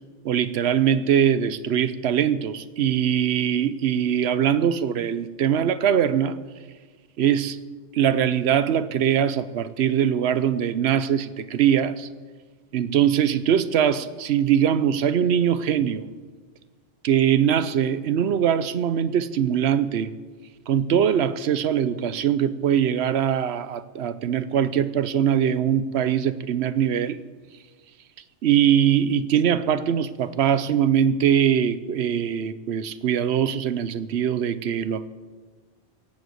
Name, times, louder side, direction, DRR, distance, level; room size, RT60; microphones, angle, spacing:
voice 1, 0.2-6.4 7.2-7.6 7.9-12.1 12.7-16.1 17.0-20.1 20.7-27.2 28.4-35.1, right 9 dB, 65° right, 14 dB, 0.9 m, -22 dB
17.5 x 7.9 x 7.9 m, 1.4 s
omnidirectional pair, 1.3 m